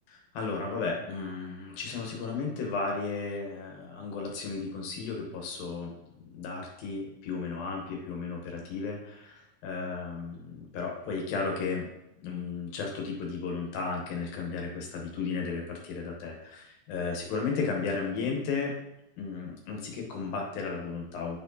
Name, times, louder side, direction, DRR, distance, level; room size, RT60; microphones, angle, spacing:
voice 1, 0.1-5.9 6.3-11.9 12.2-18.7 19.2-21.4, left 4 dB, 70° left, 0 dB, 2.6 m, -34 dB
9.1 x 4.3 x 2.7 m, 0.86 s
omnidirectional pair, 4.6 m